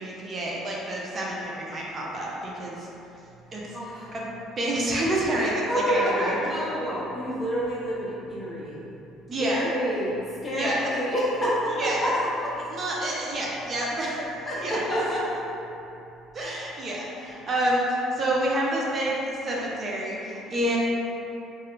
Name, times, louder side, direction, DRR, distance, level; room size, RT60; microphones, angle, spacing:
voice 1, 0.0-2.9 3.5-3.8 4.1-4.3 4.6-6.6 9.3-9.7 10.5-10.9 11.8-12.1 12.7-14.2 14.6-14.8 16.3-20.8, right 1 dB, 35° right, -4 dB, 0.4 m, -28 dB
voice 2, 3.5-4.1 5.3-8.8 9.4-10.2 10.4-12.1 12.4-12.5 14.0-15.4, equal, 25° left, -7 dB, 0.7 m, -28 dB
2.3 x 2.0 x 3.0 m, 2.9 s
cardioid pair, 130°, 0 cm